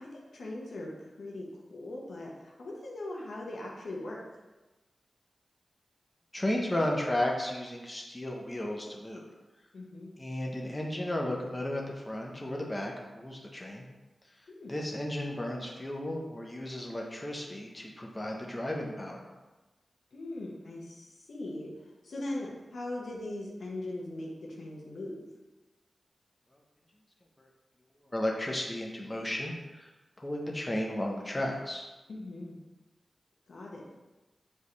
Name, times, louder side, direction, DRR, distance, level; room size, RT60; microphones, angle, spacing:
voice 1, 0.0-4.2 9.7-10.1 14.5-14.7 20.1-21.7 22.0-25.3 32.1-32.6 33.5-33.9, left 1 dB, 80° left, -3 dB, 1.5 m, -40 dB
voice 2, 6.3-9.2 10.2-13.9 14.7-19.3 28.1-29.9 30.2-31.8, left 1 dB, 20° left, -1 dB, 1.1 m, -34 dB
7.4 x 5.3 x 3.4 m, 1.1 s
wide cardioid pair, 80°, 0 cm